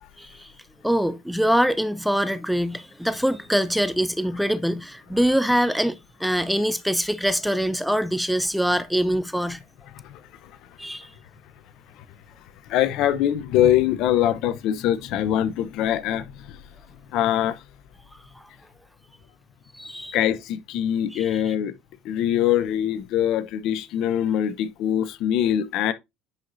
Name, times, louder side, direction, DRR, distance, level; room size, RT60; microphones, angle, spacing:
voice 1, 0.2-0.5 0.8-9.6 10.8-11.1 19.7-20.2 21.1-21.3, equal, ahead, 0.6 m, -24 dB
voice 2, 9.9-10.5 12.7-16.6 17.1-17.6 20.1-21.7 22.0-25.9, left 11 dB, 65° left, 0.8 m, -23 dB
10.0 x 4.8 x 2.7 m
supercardioid pair, 90°, 0 cm